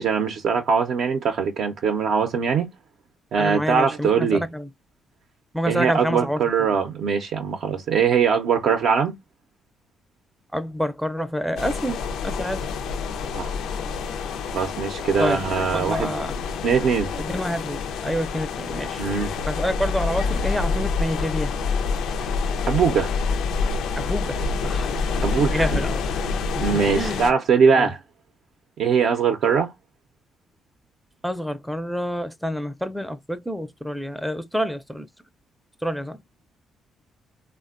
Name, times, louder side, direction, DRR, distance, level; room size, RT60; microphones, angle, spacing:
voice 1, 0.0-2.7 3.3-4.4 5.7-9.1 13.3-13.5 14.5-16.1 16.6-17.1 19.0-19.3 22.7-23.1 25.2-25.6 26.6-28.0 28.8-29.7, right 6 dB, 70° right, 0.5 m, -21 dB
voice 2, 3.4-4.7 5.5-6.4 10.5-12.7 15.2-15.4 15.7-16.4 17.2-19.0 19.5-21.6 24.0-25.0 25.4-26.0 26.5-27.3 27.8-27.9 31.2-35.1 35.8-36.2, equal, ahead, 0.4 m, -28 dB
sound 1, 11.6-27.3, left 5 dB, 85° left, 0.4 m, -27 dB
3.3 x 2.1 x 2.3 m
cardioid pair, 90°, 0 cm